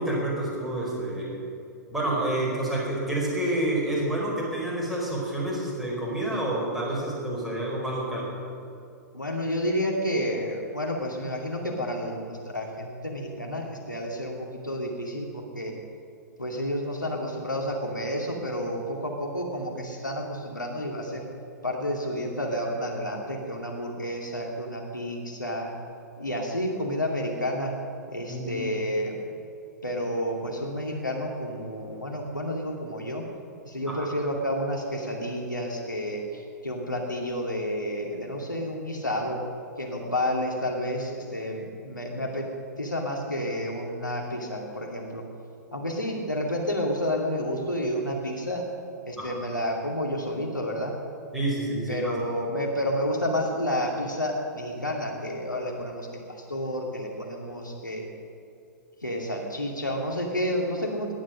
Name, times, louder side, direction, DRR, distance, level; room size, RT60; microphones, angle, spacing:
voice 1, 0.0-1.4 1.9-8.3 28.3-28.6 33.9-34.1 49.2-49.3 51.3-52.1, right 1 dB, ahead, -6 dB, 4.9 m, -28 dB
voice 2, 9.1-15.7 16.4-21.3 21.6-25.7 26.2-27.7 28.1-29.2 29.8-33.2 33.6-39.4 39.8-42.5 42.8-45.3 45.7-48.7 49.0-51.0 51.9-58.1 59.0-61.1, equal, 85° left, 0 dB, 2.3 m, -30 dB
18.0 x 11.0 x 6.5 m, 2.5 s
figure-of-eight pair, 105°, 10 cm